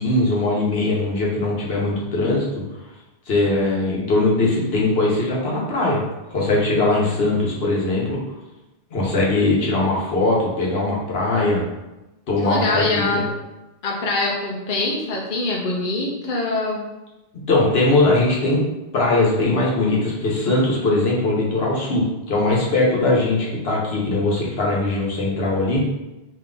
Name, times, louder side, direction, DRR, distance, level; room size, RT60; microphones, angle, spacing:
voice 1, 0.0-2.4 3.3-6.0 6.3-8.2 8.9-11.6 12.3-13.2 17.5-18.6 18.9-25.8, left 2 dB, 75° left, -4 dB, 1.2 m, -20 dB
voice 2, 12.4-13.3 13.8-16.8, left 2 dB, 55° left, -2 dB, 0.8 m, -24 dB
3.3 x 2.8 x 3.8 m, 1.0 s
omnidirectional pair, 1.1 m